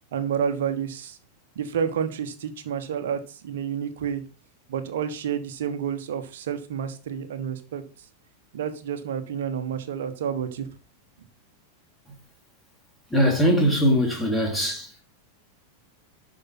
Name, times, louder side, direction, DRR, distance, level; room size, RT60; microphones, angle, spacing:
voice 1, 0.1-1.2 1.5-4.2 4.7-7.8 8.5-10.7, right 8 dB, 60° right, 1.3 m, -29 dB
voice 2, 13.1-15.0, equal, 5° left, 3.1 m, -21 dB
12.0 x 5.2 x 4.2 m
figure-of-eight pair, 90°, 0 cm